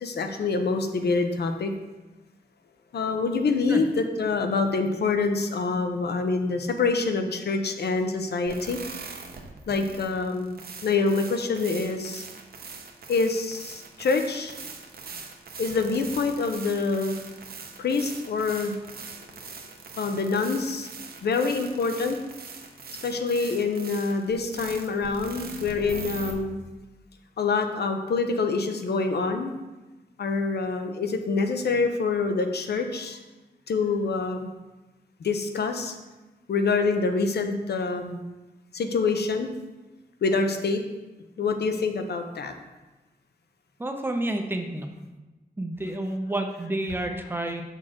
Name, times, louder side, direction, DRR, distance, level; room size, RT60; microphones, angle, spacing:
voice 1, 0.0-1.7 2.9-8.8 9.7-10.5 10.8-12.2 13.1-14.5 15.6-17.1 17.8-18.7 20.0-20.9 21.2-22.2 23.0-26.6 27.4-29.5 30.2-33.2 33.7-34.5 35.2-35.9 36.5-38.2 38.7-39.5 40.2-40.8 41.4-42.5, left 4 dB, 75° left, 6 dB, 0.7 m, -26 dB
sound 1, 8.5-26.3, right 4 dB, 65° right, 0.8 m, -41 dB
voice 2, 43.8-44.9 45.6-47.6, right 1 dB, 15° right, 4 dB, 0.6 m, -29 dB
6.6 x 6.2 x 3.7 m, 1.1 s
wide cardioid pair, 175°, 17 cm